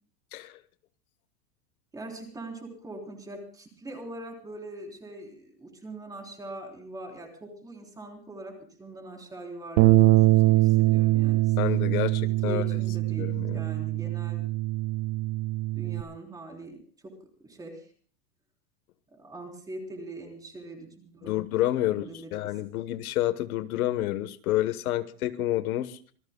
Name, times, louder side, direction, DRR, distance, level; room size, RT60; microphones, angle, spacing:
voice 1, 1.9-11.6 12.2-14.5 15.8-16.8 17.0-17.1 17.4-17.9 19.1-21.3 21.9-22.6, right 2 dB, 10° right, 2 dB, 3.5 m, -42 dB
Bass guitar, 9.8-16.0, right 18 dB, 55° right, 1.5 m, -23 dB
voice 2, 11.6-12.7 13.2-13.6 21.2-26.0, left 14 dB, 65° left, 13 dB, 1.2 m, -29 dB
26.5 x 20.0 x 2.2 m, 0.44 s
supercardioid pair, 175°, 47 cm